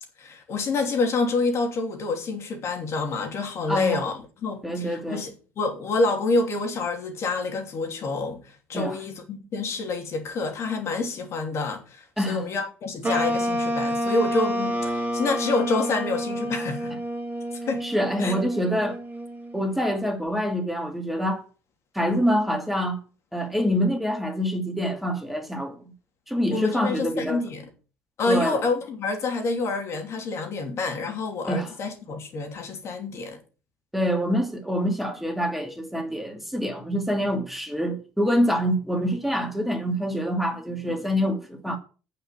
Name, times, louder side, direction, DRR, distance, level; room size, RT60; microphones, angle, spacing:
voice 1, 0.2-16.9 17.7-17.8 18.2-18.3 26.5-27.7 28.2-33.4, left 3 dB, 55° left, 2.9 m, -27 dB
voice 2, 3.7-4.0 4.6-5.2 8.7-9.0 12.2-12.5 17.8-19.0 19.5-21.4 21.9-23.0 23.3-25.8 26.3-27.4 28.3-28.6 31.5-31.7 33.9-41.8, equal, 5° right, 2.6 m, -26 dB
sound 1, 13.0-19.7, equal, 30° right, 2.5 m, -29 dB
8.9 x 5.7 x 7.4 m
supercardioid pair, 75°, 6 cm